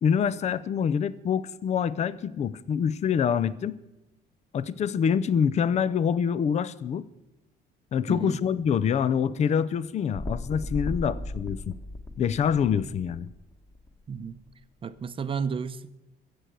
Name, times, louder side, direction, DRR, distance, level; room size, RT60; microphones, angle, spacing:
voice 1, 0.0-3.8 4.5-7.1 7.9-11.8 12.2-13.3, left 7 dB, 40° left, 18 dB, 0.6 m, -26 dB
voice 2, 8.1-8.4 14.1-14.4 14.8-15.9, right 6 dB, 30° right, 13 dB, 0.7 m, -32 dB
sound 1, 10.1-13.9 14.5-14.6, left 1 dB, 15° left, 1.6 m, -36 dB
15.0 x 8.0 x 7.6 m, 0.93 s
cardioid pair, 110°, 17 cm